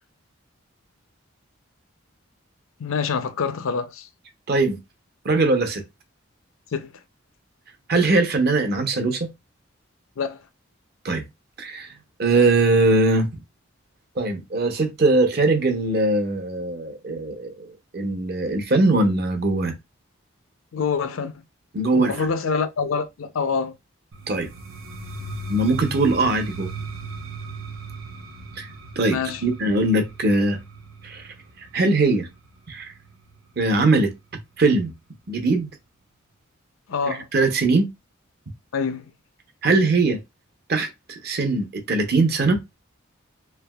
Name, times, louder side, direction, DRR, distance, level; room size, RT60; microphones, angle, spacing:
voice 1, 2.8-4.1 6.7-6.9 10.2-10.4 20.7-21.3 22.0-23.7 29.1-29.4 36.9-37.3 38.7-39.0, left 5 dB, 80° left, 0.5 m, -26 dB
voice 2, 4.5-4.8 5.2-5.8 7.9-9.3 11.0-11.2 11.6-11.9 12.2-13.3 14.2-19.7 21.7-22.2 24.3-24.5 25.5-26.7 28.6-28.7 29.0-30.6 31.0-31.3 31.7-32.3 32.7-32.9 33.6-34.1 34.6-34.9 35.3-35.7 37.1-37.9 39.6-40.2 40.7-42.6, right 2 dB, 50° right, 0.7 m, -21 dB
sound 1, 24.1-33.9, right 2 dB, 85° right, 0.7 m, -37 dB
3.3 x 2.7 x 2.2 m
head